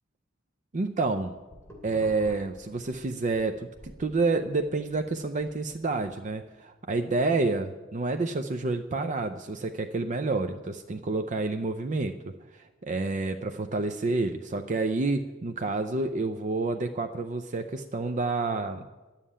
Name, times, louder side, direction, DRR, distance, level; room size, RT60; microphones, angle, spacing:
voice 1, 0.7-1.3 1.8-3.7 4.0-12.1 12.5-18.9, right 3 dB, 40° right, 7 dB, 0.5 m, -29 dB
sound 1, 1.4-3.4 3.7-6.1, equal, 15° left, 3.0 m, -49 dB
11.0 x 7.4 x 9.9 m, 1.2 s
head